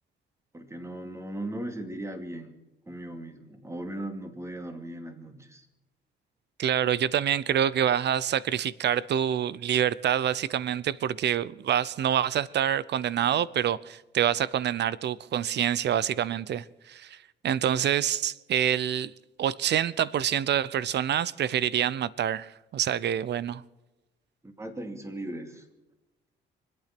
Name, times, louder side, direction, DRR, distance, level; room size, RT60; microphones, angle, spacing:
voice 1, 0.5-2.6 2.9-5.7 24.4-25.7, right 1 dB, 15° right, 2.5 m, -38 dB
voice 2, 6.6-17.2 17.4-19.1 19.4-23.6, right 10 dB, 60° right, 0.7 m, -26 dB
25.0 x 8.9 x 6.0 m
cardioid pair, 90°, 20 cm